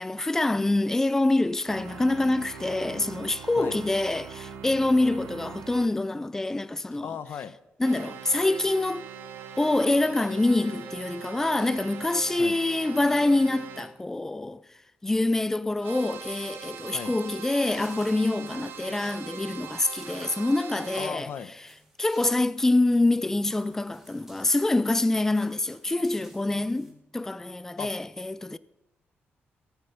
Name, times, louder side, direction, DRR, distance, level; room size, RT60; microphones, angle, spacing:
voice 1, 0.0-7.1 7.8-9.1 9.6-14.6 15.0-21.3 22.0-28.6, left 2 dB, 10° left, 0.4 m, -25 dB
sound 1, 1.7-5.9 7.8-13.9 15.8-21.1, right 8 dB, 75° right, 1.3 m, -42 dB
voice 2, 7.0-7.6 12.4-12.6 16.9-17.2 21.0-21.5 27.8-27.9, left 7 dB, 65° left, 1.0 m, -36 dB
sound 2, 17.6-26.9, right 1 dB, 10° right, 4.2 m, -53 dB
18.0 x 8.4 x 5.2 m
cardioid pair, 120°, 4 cm